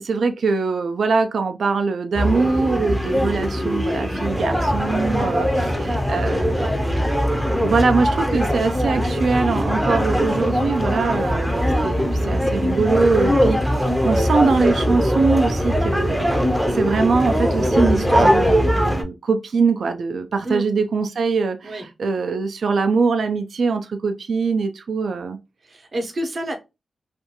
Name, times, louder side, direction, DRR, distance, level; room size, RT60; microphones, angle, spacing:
voice 1, 0.0-6.7 7.5-25.4, right 4 dB, 75° right, 0.3 m, -22 dB
sound 1, 2.1-19.0, equal, 5° right, 0.4 m, -21 dB
voice 2, 25.7-26.6, right 1 dB, 45° right, 0.6 m, -28 dB
2.4 x 2.2 x 2.8 m
wide cardioid pair, 135°, 0 cm